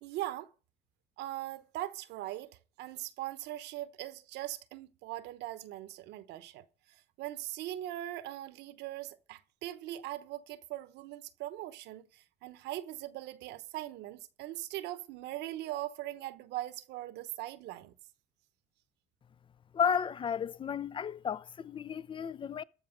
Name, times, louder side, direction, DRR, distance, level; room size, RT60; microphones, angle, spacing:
voice 1, 0.0-0.5 1.2-17.9, right 14 dB, 85° right, 1.0 m, -41 dB
voice 2, 19.7-22.6, left 7 dB, 30° left, 0.5 m, -33 dB
14.0 x 4.8 x 9.1 m
cardioid pair, 110°, 17 cm